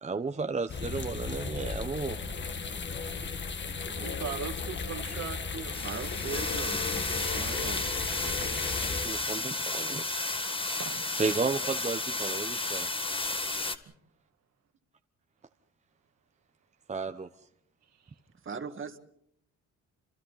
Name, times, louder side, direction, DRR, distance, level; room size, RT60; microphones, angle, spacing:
voice 1, 0.0-2.2 8.6-10.2 11.2-12.9 16.9-17.3, right 4 dB, 25° right, 7 dB, 1.0 m, -33 dB
sound 1, 0.7-9.1, left 5 dB, 40° left, 1.7 m, -35 dB
voice 2, 3.9-6.4 6.8-6.9 7.2-7.5 10.8-11.0 17.8-18.1, right 7 dB, 60° right, 6 dB, 2.2 m, -41 dB
sound 2, 5.7-13.8, left 2 dB, 15° left, 1.7 m, -33 dB
voice 3, 5.8-7.9 18.5-19.0, right 5 dB, 40° right, 7 dB, 2.0 m, -39 dB
30.0 x 27.0 x 4.1 m, 0.75 s
cardioid pair, 90°, 30 cm